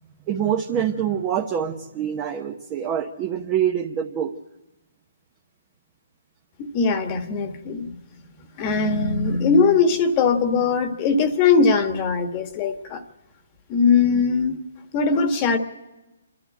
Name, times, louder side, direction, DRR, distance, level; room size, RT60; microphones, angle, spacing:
voice 1, 0.3-4.3 14.0-14.2, right 9 dB, 25° right, 3 dB, 1.0 m, -25 dB
voice 2, 6.6-8.0 8.6-13.0 13.7-14.6 14.9-15.6, left 5 dB, 30° left, 7 dB, 1.5 m, -20 dB
27.0 x 12.0 x 8.9 m, 1.1 s
hypercardioid pair, 155°, 0 cm